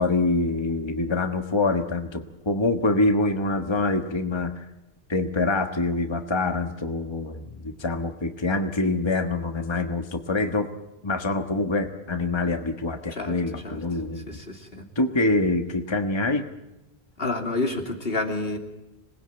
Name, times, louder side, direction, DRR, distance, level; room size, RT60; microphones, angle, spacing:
voice 1, 0.0-4.6 5.1-10.7 11.0-14.4 14.9-16.5, left 2 dB, 25° left, 6 dB, 1.4 m, -25 dB
voice 2, 13.1-13.8 14.3-14.9 17.2-18.6, left 2 dB, 70° left, 3 dB, 3.3 m, -29 dB
27.0 x 20.0 x 8.9 m, 0.98 s
omnidirectional pair, 1.0 m